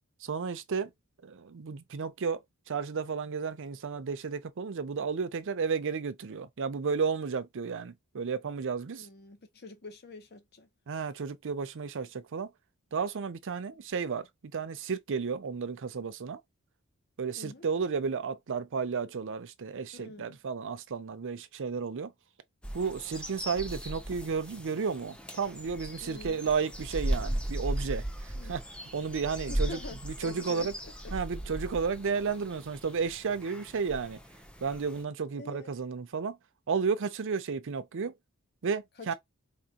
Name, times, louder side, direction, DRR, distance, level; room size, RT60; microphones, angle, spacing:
voice 1, 0.2-0.9 1.2-2.4 2.7-9.1 10.9-12.5 12.9-16.4 17.2-22.1 22.7-28.0 28.5-28.6 28.9-30.7 31.1-34.2 34.6-36.4 36.7-38.1 38.6-39.1, right 5 dB, 60° right, 0.5 m, -33 dB
voice 2, 9.0-10.7 17.4-17.7 19.9-20.4 26.0-26.5 28.3-28.6 29.5-31.1 35.2-35.8 39.0-39.1, left 3 dB, 50° left, 0.9 m, -46 dB
sound 1, 22.6-35.0, right 1 dB, 5° left, 0.6 m, -37 dB
4.2 x 2.4 x 2.8 m
head